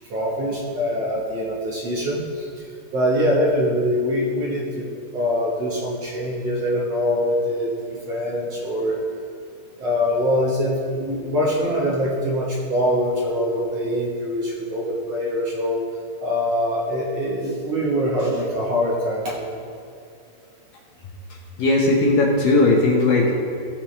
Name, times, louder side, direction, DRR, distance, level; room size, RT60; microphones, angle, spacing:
voice 1, 0.1-4.9 5.1-9.0 9.8-15.9 16.2-19.6, equal, 70° right, -5 dB, 1.5 m, -23 dB
voice 2, 21.6-23.4, left 2 dB, 65° left, -1 dB, 2.3 m, -17 dB
16.0 x 6.8 x 3.3 m, 2.6 s
omnidirectional pair, 4.8 m